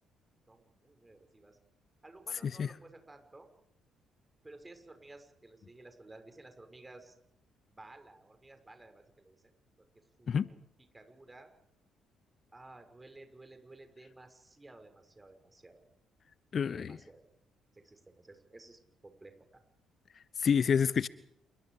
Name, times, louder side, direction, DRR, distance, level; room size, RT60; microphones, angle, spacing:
voice 1, 0.5-1.6 2.0-3.5 4.4-7.2 7.7-9.5 9.8-9.9 10.2-10.6 10.9-11.5 12.5-15.8 16.7-17.2 17.7-19.6, right 2 dB, 20° right, 7 dB, 6.1 m, -54 dB
voice 2, 16.5-17.0 20.4-21.1, left 7 dB, 45° left, 19 dB, 0.8 m, -28 dB
28.5 x 23.5 x 5.1 m, 0.73 s
hypercardioid pair, 45°, 0 cm